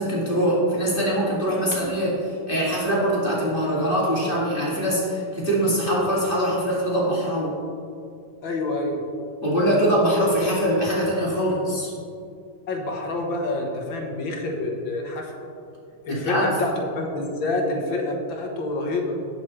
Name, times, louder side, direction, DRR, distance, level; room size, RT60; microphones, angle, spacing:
voice 1, 0.0-7.6 9.4-11.9 16.1-16.4, equal, 25° left, -6 dB, 2.4 m, -23 dB
voice 2, 8.4-9.0 12.7-15.3 16.0-19.2, left 2 dB, 80° left, 1 dB, 1.9 m, -27 dB
18.0 x 6.1 x 3.2 m, 2.5 s
omnidirectional pair, 2.1 m